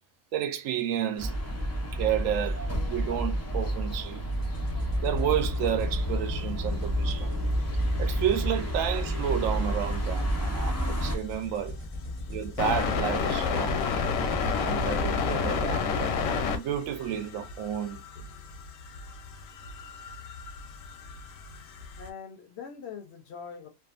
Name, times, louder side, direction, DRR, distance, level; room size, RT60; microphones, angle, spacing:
voice 1, 0.3-1.4 1.9-4.2 5.0-7.3 8.0-11.8 12.3-13.9 14.6-16.1 16.5-18.0, right 9 dB, 80° right, 1.0 m, -31 dB
sound 1, 1.2-11.2, equal, 20° left, 0.4 m, -30 dB
sound 2, 4.3-15.6, left 1 dB, 10° right, 0.8 m, -38 dB
sound 3, 8.5-8.6 11.7-11.8 12.6-22.1, left 5 dB, 90° left, 1.0 m, -31 dB
voice 2, 22.0-23.7, left 6 dB, 65° left, 0.7 m, -42 dB
2.6 x 2.4 x 2.3 m
omnidirectional pair, 1.4 m